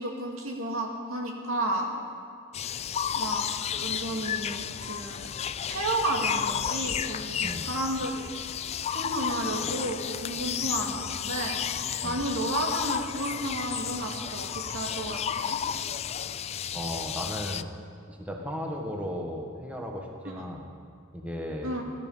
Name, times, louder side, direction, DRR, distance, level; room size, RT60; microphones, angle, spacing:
voice 1, 0.0-1.9 3.1-3.4 3.8-5.3 5.7-8.3 8.9-11.6 12.0-15.6 20.2-20.4 21.6-21.8, right 1 dB, 75° right, 0 dB, 2.3 m, -32 dB
sound 1, 2.5-17.6, left 8 dB, 30° left, 0.3 m, -32 dB
voice 2, 16.7-17.7 18.1-20.7 21.1-21.7, equal, 5° right, 0 dB, 1.5 m, -35 dB
18.0 x 13.0 x 5.6 m, 2.2 s
head